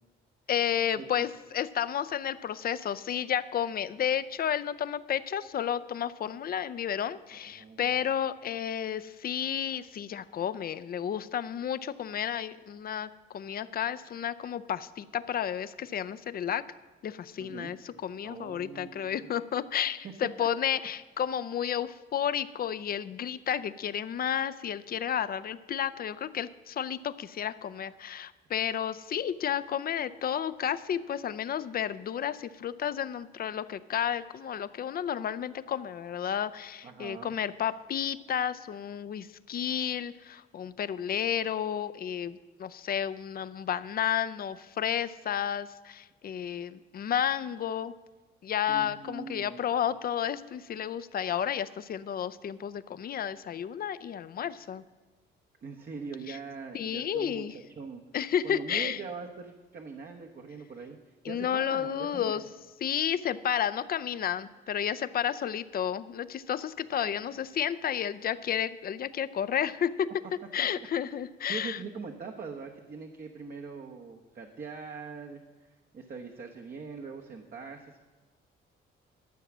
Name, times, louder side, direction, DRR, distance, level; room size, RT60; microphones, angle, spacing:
voice 1, 0.5-13.1 13.3-16.6 17.0-47.9 48.4-54.8 56.3-56.4 56.7-57.5 58.1-59.0 61.2-62.4 62.8-70.1 70.5-71.8, left 9 dB, 50° left, 14 dB, 0.5 m, -32 dB
voice 2, 7.6-7.9 17.4-17.7 18.2-19.3 20.4-20.5 36.8-37.3 48.7-49.6 55.6-57.4 57.8-58.0 58.4-61.0 61.3-62.5 67.0-67.3 70.6-70.7 71.5-75.4 75.9-78.0, right 5 dB, 50° right, 2 dB, 1.0 m, -42 dB
12.0 x 7.1 x 6.1 m, 1.2 s
cardioid pair, 90°, 20 cm